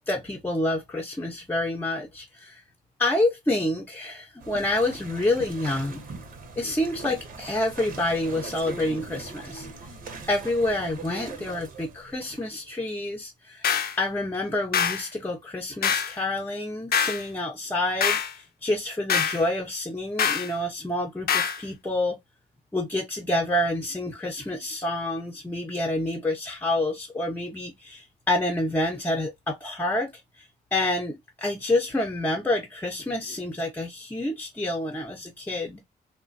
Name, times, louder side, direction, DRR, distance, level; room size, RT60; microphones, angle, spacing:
voice 1, 0.1-2.6 3.0-6.0 6.6-9.7 10.3-13.7 14.0-22.2 22.7-30.1 30.7-35.8, left 1 dB, 10° left, 0.7 m, -28 dB
sound 1, 4.4-12.7, right 3 dB, 65° right, 0.9 m, -41 dB
sound 2, 13.6-14.0 14.7-15.0 15.8-16.1 16.9-17.2 18.0-18.3 19.1-19.4 20.2-20.5 21.3-21.6, left 7 dB, 70° left, 0.6 m, -24 dB
3.1 x 2.2 x 2.5 m
cardioid pair, 100°, 16 cm